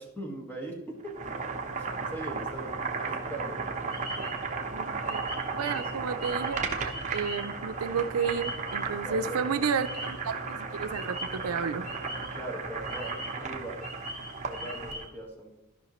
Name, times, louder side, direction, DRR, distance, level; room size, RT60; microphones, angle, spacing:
voice 1, 0.0-3.7 5.7-6.1 9.0-9.7 12.3-13.9 14.4-15.5, right 1 dB, 10° left, 0 dB, 1.5 m, -41 dB
Boiling, 1.0-15.1, right 4 dB, 35° right, 1.0 m, -35 dB
sound 1, 3.6-8.9 9.2-10.3 10.9-12.5 12.8-15.0, equal, 35° left, 3.0 m, -42 dB
voice 2, 4.7-5.2 5.5-11.9, right 6 dB, 85° right, 10 dB, 0.5 m, -32 dB
13.5 x 5.7 x 3.0 m, 1.0 s
head